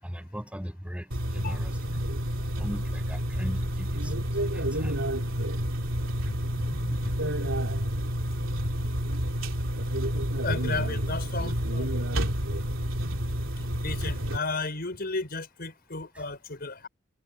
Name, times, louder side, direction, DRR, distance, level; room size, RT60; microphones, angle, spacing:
voice 1, 0.0-2.0 2.6-4.1 4.4-5.0 6.3-7.1, equal, 5° right, 6.9 m, -37 dB
sound 1, 1.1-14.4, equal, 75° right, 3.6 m, -29 dB
voice 2, 10.4-11.9 13.7-16.9, left 3 dB, 50° left, 5.8 m, -33 dB
head